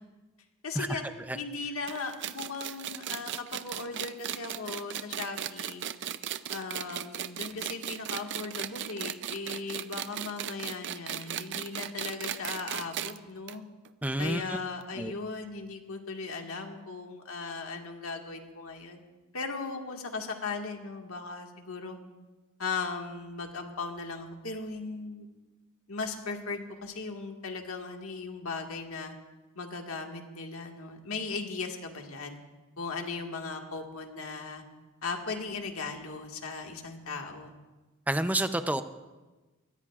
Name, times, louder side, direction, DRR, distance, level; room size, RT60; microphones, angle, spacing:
voice 1, 0.6-1.0 1.3-5.8 6.5-13.6 14.2-19.0 19.3-22.0 22.6-25.3 25.9-29.1 29.5-32.4 32.8-34.6 35.0-37.5, left 4 dB, 75° left, 2 dB, 1.8 m, -37 dB
sound 1, 1.9-13.2 13.5-13.6 13.8-13.9 14.8-14.9, right 10 dB, 55° right, 0.5 m, -36 dB
voice 2, 14.0-14.6 15.0-15.1 38.1-38.8, right 1 dB, 5° right, 9 dB, 0.5 m, -29 dB
23.5 x 18.5 x 2.4 m, 1.2 s
head